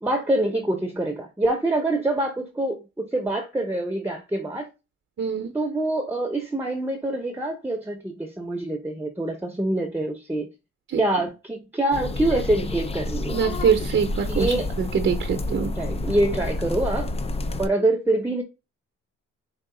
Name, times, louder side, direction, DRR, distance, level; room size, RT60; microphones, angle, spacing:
voice 1, 0.0-4.7 5.5-10.5 11.0-13.4 14.3-14.7 15.6-17.1 17.6-18.4, right 1 dB, 5° right, 0.8 m, -25 dB
voice 2, 5.2-5.5 10.9-11.0 13.3-15.7, right 6 dB, 40° right, 0.7 m, -24 dB
sound 1, 11.9-17.7, left 2 dB, 20° left, 0.4 m, -29 dB
4.6 x 2.5 x 3.8 m
cardioid pair, 90°, 30 cm